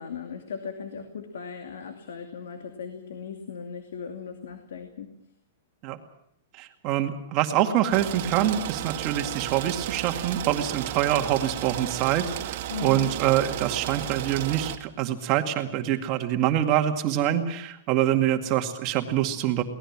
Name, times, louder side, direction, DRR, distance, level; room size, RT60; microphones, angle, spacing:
voice 1, 0.0-5.1 12.7-13.1, left 6 dB, 85° left, 6 dB, 2.6 m, -38 dB
voice 2, 6.5-19.6, right 11 dB, 30° right, 6 dB, 2.1 m, -25 dB
sound 1, 7.9-14.8, right 12 dB, 50° right, 1.6 m, -33 dB
23.0 x 18.5 x 7.4 m, 0.75 s
hypercardioid pair, 165°, 0 cm